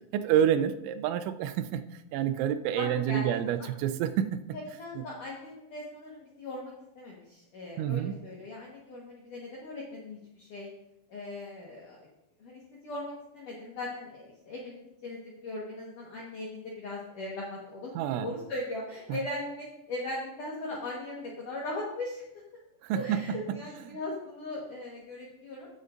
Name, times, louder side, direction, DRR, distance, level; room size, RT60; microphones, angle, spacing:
voice 1, 0.1-1.8 2.1-4.4 5.0-5.1 7.8-8.1 18.0-18.3 19.1-19.2 22.8-23.6 23.9-24.0, right 10 dB, 80° right, 10 dB, 2.9 m, -28 dB
voice 2, 2.8-3.7 4.5-10.7 11.1-12.1 12.4-22.2 22.9-25.7, left 2 dB, 65° left, -4 dB, 2.0 m, -39 dB
15.0 x 7.7 x 2.5 m, 0.85 s
omnidirectional pair, 5.6 m